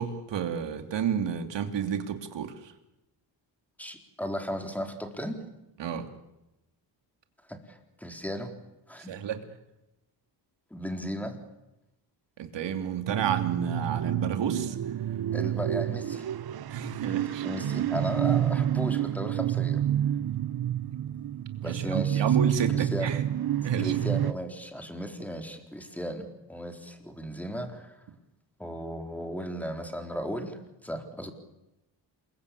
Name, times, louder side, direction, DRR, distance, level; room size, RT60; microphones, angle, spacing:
voice 1, 0.0-2.7 5.8-6.1 9.1-9.4 12.4-14.8 16.7-17.5 21.6-23.2 23.6-24.0, right 7 dB, 75° right, 7 dB, 3.2 m, -31 dB
voice 2, 3.8-5.4 7.5-8.5 8.9-9.1 10.7-11.4 15.3-16.3 17.1-19.8 21.6-22.2 22.7-23.2 23.8-28.0 28.6-31.3, equal, 5° left, 5 dB, 3.9 m, -36 dB
sound 1, 13.1-24.3, right 11 dB, 55° right, 0.9 m, -29 dB
28.0 x 22.0 x 8.5 m, 0.92 s
cardioid pair, 120°, 44 cm